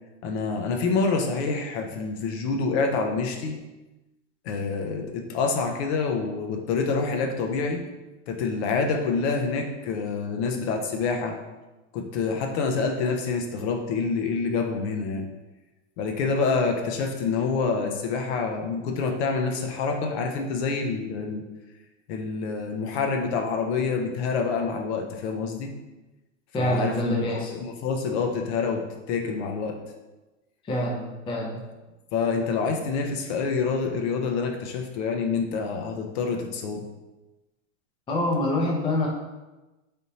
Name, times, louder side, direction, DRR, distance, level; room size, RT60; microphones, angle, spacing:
voice 1, 0.2-3.6 4.4-7.8 8.3-11.4 11.9-15.3 16.0-21.4 22.1-25.7 26.6-29.8 32.1-36.9, left 4 dB, 60° left, 3 dB, 0.7 m, -27 dB
voice 2, 26.5-27.5 30.6-31.6 38.1-39.1, left 1 dB, 15° left, -3 dB, 0.5 m, -26 dB
4.0 x 3.4 x 2.7 m, 1.1 s
supercardioid pair, 145°, 37 cm